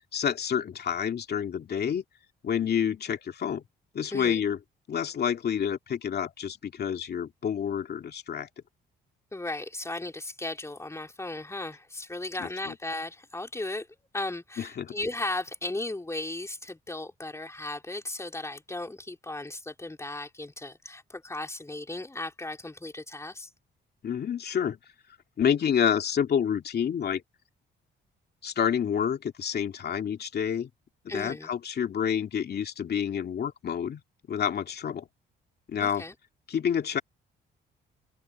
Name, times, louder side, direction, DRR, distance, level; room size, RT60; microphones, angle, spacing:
voice 1, 0.1-2.0 2.4-3.6 3.9-4.6 4.9-8.5 12.4-12.7 14.6-14.9 24.0-24.8 25.4-27.2 28.4-30.7 31.1-34.0 34.3-35.0 35.7-36.0 36.5-37.0, left 8 dB, 55° left, 2.6 m, -28 dB
voice 2, 4.1-4.4 9.3-13.9 14.1-23.5 31.1-31.5 35.8-36.1, left 2 dB, 15° left, 3.6 m, -36 dB
open air
cardioid pair, 90°, 20 cm